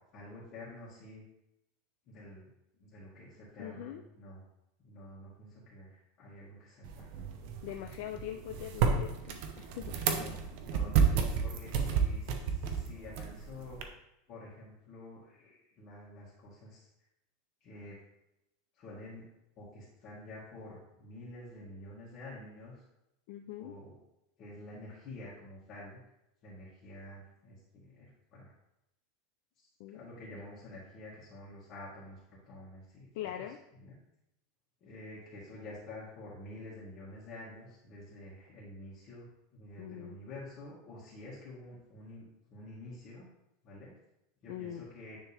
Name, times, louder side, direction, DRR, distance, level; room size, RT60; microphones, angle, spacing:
voice 1, 0.1-1.2 2.1-2.5 2.8-4.4 4.8-7.1 10.1-13.9 14.3-16.8 17.6-18.0 18.8-19.2 19.6-22.8 23.6-24.0 24.4-26.0 26.4-28.5 29.9-33.4 33.8-34.0 34.8-39.3 39.5-42.2 42.5-43.2 43.6-43.9 44.4-45.2, left 1 dB, 35° left, -9 dB, 1.9 m, -49 dB
voice 2, 3.6-4.0 7.6-10.3 23.3-23.7 29.8-30.0 33.1-33.6 39.8-40.2 44.5-44.9, left 11 dB, 55° left, 5 dB, 0.4 m, -42 dB
sound 1, 6.8-13.8, right 6 dB, 50° right, 0.8 m, -31 dB
9.7 x 3.5 x 3.5 m, 0.86 s
supercardioid pair, 165°, 0 cm